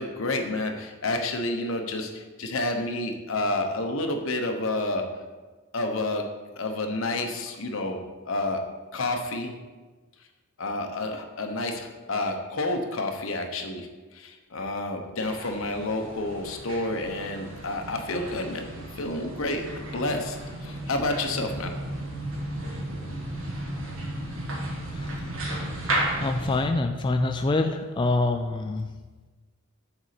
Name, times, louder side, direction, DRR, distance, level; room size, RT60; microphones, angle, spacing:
voice 1, 0.0-5.0 5.7-6.2 6.6-8.0 8.2-8.6 8.9-9.5 10.6-13.9 14.1-20.4 20.6-21.7, left 2 dB, 70° left, 4 dB, 0.9 m, -29 dB
sound 1, 15.2-26.6, right 1 dB, 75° right, 1.7 m, -34 dB
voice 2, 24.9-25.7 26.1-28.9, left 2 dB, 25° left, 5 dB, 0.3 m, -26 dB
7.1 x 4.1 x 6.6 m, 1.3 s
head